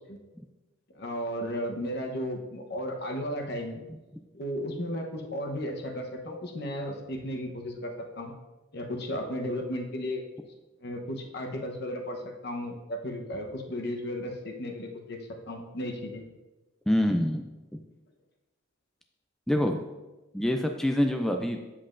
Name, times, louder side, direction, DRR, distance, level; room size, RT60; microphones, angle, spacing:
voice 1, 0.9-3.8 4.3-8.3 8.7-10.2 10.8-16.2, equal, 55° left, 3 dB, 0.9 m, -34 dB
voice 2, 16.9-17.8 19.5-19.8 20.3-21.6, left 1 dB, ahead, 3 dB, 0.3 m, -26 dB
8.5 x 7.4 x 2.5 m, 1.1 s
head